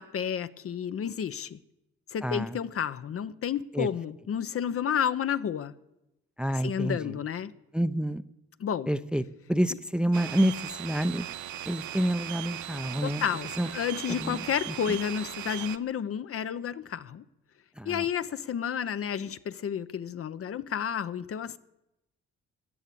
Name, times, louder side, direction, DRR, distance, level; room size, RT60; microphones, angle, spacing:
voice 1, 0.0-1.6 2.1-5.7 6.6-7.5 8.6-8.9 13.0-17.2 17.8-21.6, left 8 dB, 50° left, 0.7 m, -31 dB
voice 2, 2.2-2.6 3.7-3.9 6.4-7.2 7.7-8.2 8.9-11.3 11.6-13.2 13.6-13.7 14.1-15.0 17.8-18.1, right 1 dB, 5° right, 0.6 m, -29 dB
sound 1, 10.1-15.8, right 12 dB, 70° right, 0.8 m, -38 dB
16.0 x 10.5 x 8.5 m
cardioid pair, 90°, 30 cm